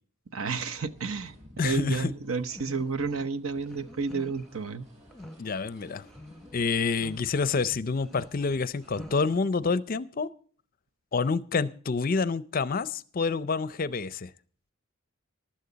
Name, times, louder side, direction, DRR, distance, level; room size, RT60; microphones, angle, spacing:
voice 1, 0.3-1.3 1.6-4.9, right 4 dB, 70° right, 0.8 m, -31 dB
sound 1, 0.7-9.1, equal, 30° right, 6.3 m, -54 dB
voice 2, 1.6-2.1 5.4-6.0 6.5-10.3 11.1-14.3, left 4 dB, 40° left, 0.5 m, -28 dB
sound 2, 2.5-3.3 3.7-4.5 5.1-5.4 6.0-6.6 7.0-7.2 7.9-9.4, left 1 dB, 5° left, 0.9 m, -46 dB
15.5 x 12.0 x 4.0 m
head